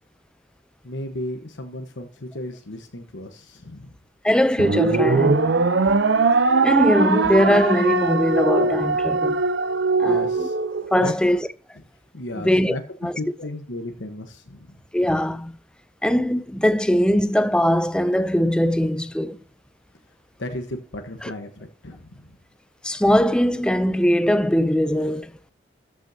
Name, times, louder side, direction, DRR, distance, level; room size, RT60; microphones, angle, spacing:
voice 1, 0.8-3.9 10.0-10.6 11.0-11.1 12.1-12.8 13.2-14.8 20.4-22.3, left 1 dB, 70° left, 1.1 m, -34 dB
voice 2, 4.2-5.7 6.6-9.4 10.0-10.5 10.9-11.5 12.4-12.8 13.0-13.1 14.9-15.5 16.0-19.4 21.2-21.3 22.8-25.3, equal, 5° left, 0.4 m, -21 dB
sound 1, 4.6-11.1, right 4 dB, 65° right, 0.6 m, -21 dB
13.5 x 6.2 x 2.7 m
head